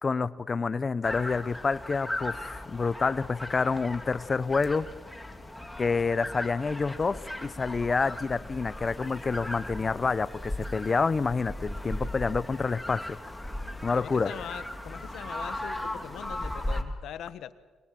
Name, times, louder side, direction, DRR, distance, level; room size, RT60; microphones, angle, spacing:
voice 1, 0.0-4.9 5.8-13.2 13.8-14.3, left 4 dB, 35° left, 16 dB, 0.8 m, -28 dB
sound 1, 1.0-16.8, left 1 dB, 5° left, 2.7 m, -37 dB
voice 2, 13.9-17.5, left 10 dB, 75° left, 13 dB, 1.3 m, -41 dB
25.0 x 21.5 x 7.6 m, 1.3 s
cardioid pair, 90°, 0 cm